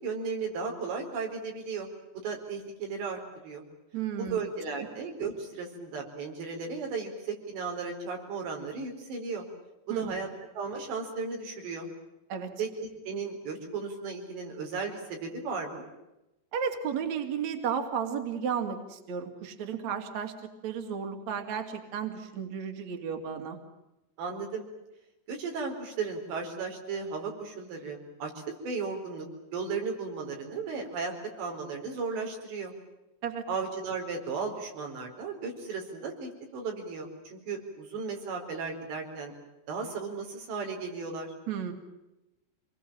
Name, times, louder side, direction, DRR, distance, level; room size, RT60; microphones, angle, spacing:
voice 1, 0.0-1.9 2.2-3.6 4.2-9.4 9.9-10.3 10.6-11.9 12.6-15.9 24.2-24.7 25.3-29.3 29.5-32.7 33.5-39.3 39.7-41.3, right 4 dB, 85° right, 2 dB, 6.6 m, -35 dB
voice 2, 3.9-4.4 9.9-10.2 12.3-12.5 16.5-23.6 33.2-33.4 41.5-41.7, right 7 dB, 45° right, 5 dB, 3.4 m, -33 dB
27.0 x 21.0 x 9.0 m, 0.95 s
omnidirectional pair, 4.9 m